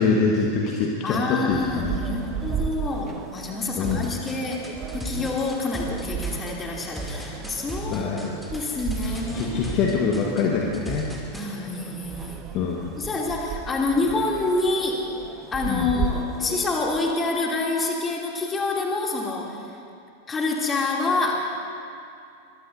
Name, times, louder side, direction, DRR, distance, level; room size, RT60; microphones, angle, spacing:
voice 1, 0.0-1.9 3.8-4.1 7.9-8.3 9.0-11.1 12.5-12.9 15.7-16.0, left 5 dB, 35° left, -1 dB, 1.6 m, -25 dB
voice 2, 1.0-4.6 4.9-8.2 8.5-9.7 11.3-12.6 13.0-15.1 15.5-19.6 20.3-21.5, left 3 dB, 20° left, -2 dB, 3.0 m, -27 dB
sound 1, 1.5-17.1, right 7 dB, 30° right, 0.9 m, -35 dB
sound 2, 3.8-11.5, right 1 dB, ahead, 2.9 m, -35 dB
23.5 x 21.5 x 2.8 m, 2.5 s
figure-of-eight pair, 90°, 0 cm